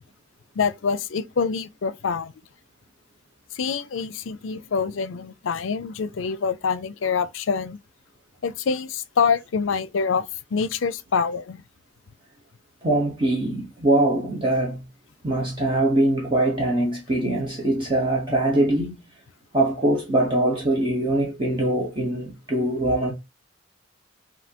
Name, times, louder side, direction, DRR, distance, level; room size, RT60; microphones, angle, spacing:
voice 1, 0.6-2.3 3.5-7.8 8.4-10.2 10.5-11.6, left 5 dB, 80° left, 0.5 m, -25 dB
voice 2, 12.8-14.8 15.2-19.0 19.5-23.1, right 1 dB, 25° right, 1.1 m, -22 dB
5.2 x 2.8 x 2.9 m
head